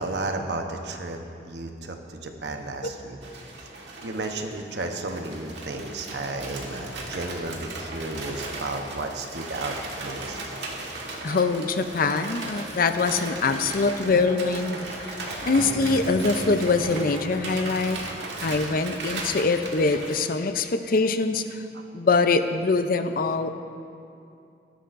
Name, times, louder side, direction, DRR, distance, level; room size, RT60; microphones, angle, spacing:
voice 1, 0.0-3.2 4.0-10.4 21.7-21.8, right 2 dB, 70° right, 4 dB, 0.9 m, -33 dB
sound 1, 3.2-20.1, right 2 dB, 85° right, 1.6 m, -37 dB
voice 2, 11.2-14.8 15.4-18.0 18.4-21.6 21.9-23.5, left 3 dB, 55° left, 9 dB, 0.6 m, -23 dB
sound 2, 15.5-18.1, equal, 10° left, 2.1 m, -41 dB
16.5 x 12.5 x 2.6 m, 2.5 s
head